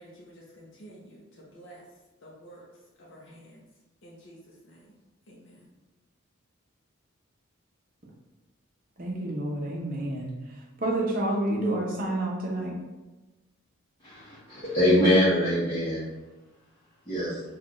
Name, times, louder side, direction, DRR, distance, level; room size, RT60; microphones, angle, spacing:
voice 1, 0.0-3.7 4.0-4.9 5.3-5.7, right 1 dB, 60° left, -5 dB, 0.6 m, -51 dB
voice 2, 9.0-12.7, right 1 dB, 40° right, -2 dB, 0.7 m, -29 dB
voice 3, 14.0-16.0 17.1-17.4, equal, 20° left, -11 dB, 0.9 m, -23 dB
4.2 x 2.4 x 3.0 m, 1.1 s
head